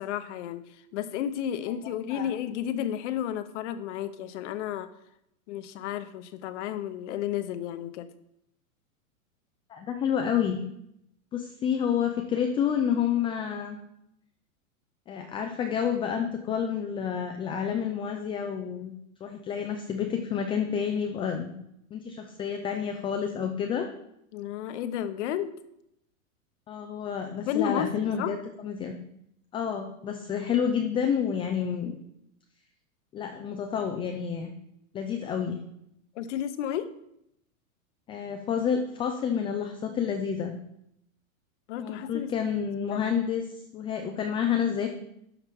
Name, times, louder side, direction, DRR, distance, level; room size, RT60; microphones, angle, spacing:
voice 1, 0.0-4.9 5.5-8.1 24.3-25.5 27.5-28.3 36.1-36.9 41.7-42.3 42.9-43.0, left 10 dB, 55° left, 12 dB, 1.0 m, -32 dB
voice 2, 9.7-10.6 11.3-13.8 15.1-18.9 19.2-21.5 21.9-23.9 26.7-28.4 28.6-28.9 29.5-31.9 33.1-34.5 34.9-35.6 38.1-40.5 41.8-44.9, left 8 dB, 15° left, 5 dB, 0.4 m, -29 dB
12.0 x 5.7 x 3.6 m, 0.78 s
hypercardioid pair, 135°, 42 cm